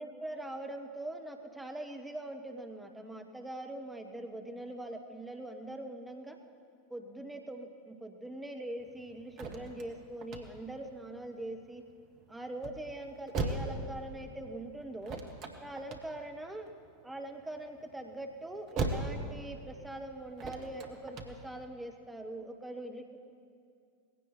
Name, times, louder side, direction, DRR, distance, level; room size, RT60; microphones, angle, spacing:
voice 1, 0.0-6.4 6.9-11.8 12.3-15.2 15.6-16.7 17.0-23.3, right 1 dB, 5° right, 5 dB, 1.2 m, -42 dB
sound 1, 8.8-21.7, right 3 dB, 40° right, 1.7 m, -40 dB
19.5 x 16.5 x 4.5 m, 2.3 s
figure-of-eight pair, 85°, 0 cm